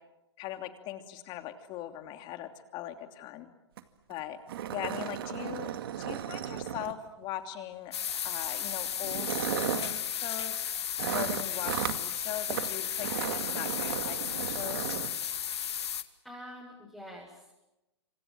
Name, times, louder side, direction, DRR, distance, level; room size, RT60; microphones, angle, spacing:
voice 1, 0.4-3.5 4.1-4.4 4.7-5.7 6.0-7.9 8.2-10.6 11.1-14.9, left 12 dB, 30° left, 7 dB, 2.9 m, -40 dB
sound 1, 3.8-3.9 4.1-4.2 4.5-7.2 8.2-8.4 9.0-10.0 11.0-12.0 12.5-12.7 13.0-15.1, right 11 dB, 55° right, 2.1 m, -35 dB
sound 2, 7.9-16.0, left 9 dB, 70° left, 1.9 m, -34 dB
voice 2, 16.2-17.5, equal, ahead, -5 dB, 7.5 m, -46 dB
28.0 x 26.5 x 7.7 m, 0.96 s
hypercardioid pair, 125°, 15 cm